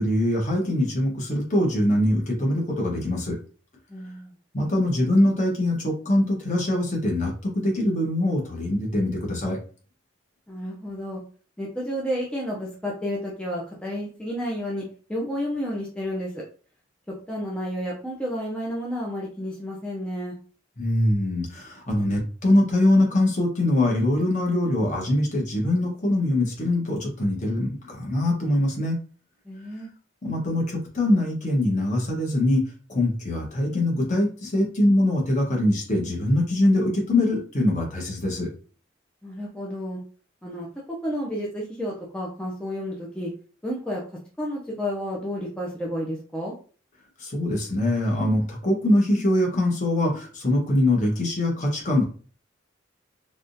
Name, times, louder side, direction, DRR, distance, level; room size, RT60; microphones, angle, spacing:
voice 1, 0.0-3.4 4.5-9.6 20.8-29.0 30.2-32.6 32.9-38.5 47.2-52.0, left 1 dB, 40° left, -1 dB, 1.1 m, -23 dB
voice 2, 3.9-4.3 10.5-11.2 11.6-14.8 15.1-16.4 17.3-20.3 29.5-29.9 39.2-40.0 40.4-43.3 43.6-44.0 44.4-46.5, equal, 5° left, -4 dB, 0.5 m, -31 dB
3.5 x 2.3 x 2.6 m, 0.40 s
head